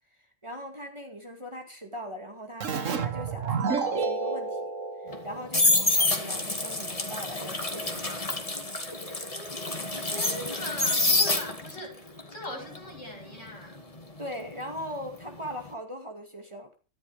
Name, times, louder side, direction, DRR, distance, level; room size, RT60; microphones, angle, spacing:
voice 1, 0.4-4.7 5.0-8.3 8.9-9.3 14.2-16.7, equal, 25° right, 2.3 m, -40 dB
Keyboard (musical), 2.6-6.0, right 5 dB, 80° right, 1.8 m, -30 dB
sound 1, 5.1-11.8 12.2-15.1 15.3-15.7, left 2 dB, 30° left, 2.2 m, -27 dB
voice 2, 9.2-13.9, left 1 dB, 75° left, 7.1 m, -41 dB
13.5 x 11.5 x 4.9 m
omnidirectional pair, 1.3 m